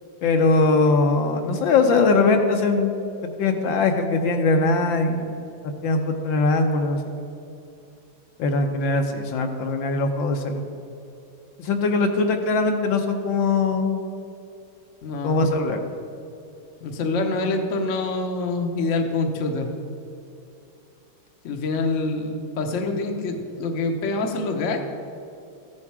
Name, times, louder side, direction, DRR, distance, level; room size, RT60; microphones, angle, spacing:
voice 1, 0.2-3.0 3.4-5.2 5.8-7.2 8.4-10.6 11.6-14.0 15.2-15.8, left 3 dB, 70° left, 5 dB, 1.5 m, -21 dB
voice 2, 15.0-15.5 16.8-19.7 21.4-24.8, left 3 dB, 50° left, 3 dB, 0.9 m, -26 dB
14.5 x 7.2 x 4.8 m, 2.7 s
omnidirectional pair, 2.3 m